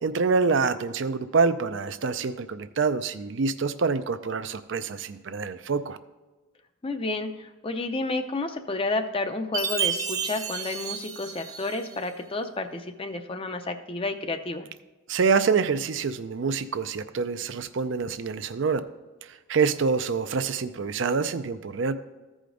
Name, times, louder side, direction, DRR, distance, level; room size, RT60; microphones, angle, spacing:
voice 1, 0.0-6.0 15.1-18.8 19.5-21.9, right 5 dB, 65° right, 11 dB, 0.5 m, -26 dB
voice 2, 6.8-14.7, left 2 dB, 25° left, 8 dB, 0.5 m, -31 dB
Chime, 9.5-12.0, right 6 dB, 20° right, 0.6 m, -31 dB
14.0 x 5.0 x 3.8 m, 1.2 s
head